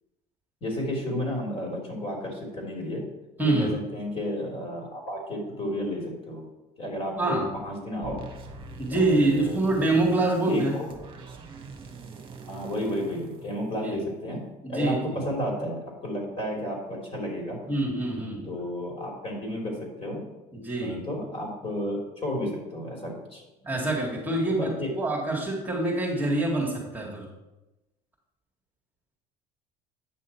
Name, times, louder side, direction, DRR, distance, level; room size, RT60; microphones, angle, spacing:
voice 1, 0.6-3.0 3.4-6.4 6.8-8.2 8.9-9.6 10.4-10.9 12.4-14.4 14.7-17.6 18.4-20.2 20.8-23.4 24.4-24.9, left 1 dB, 35° left, 0 dB, 3.4 m, -32 dB
voice 2, 3.4-3.7 7.2-7.5 8.8-10.7 13.8-14.0 14.6-15.2 17.7-18.5 20.5-21.0 23.6-24.7 25.0-27.3, right 2 dB, 10° right, -4 dB, 2.0 m, -25 dB
sound 1, 8.0-14.2, right 4 dB, 30° right, 1.5 m, -44 dB
9.2 x 6.2 x 4.4 m, 1.0 s
supercardioid pair, 100°, 18 cm